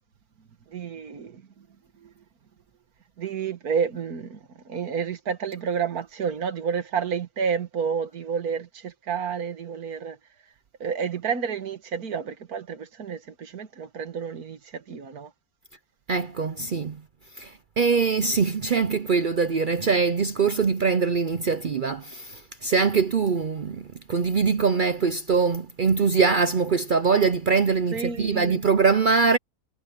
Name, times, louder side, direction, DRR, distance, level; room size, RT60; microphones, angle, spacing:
voice 1, 0.7-1.7 2.0-2.1 3.2-10.2 10.8-15.3 27.9-28.6, right 6 dB, 75° right, 2.0 m, -30 dB
voice 2, 16.1-17.0 17.4-29.4, right 5 dB, 55° right, 0.5 m, -23 dB
omnidirectional pair, 1.6 m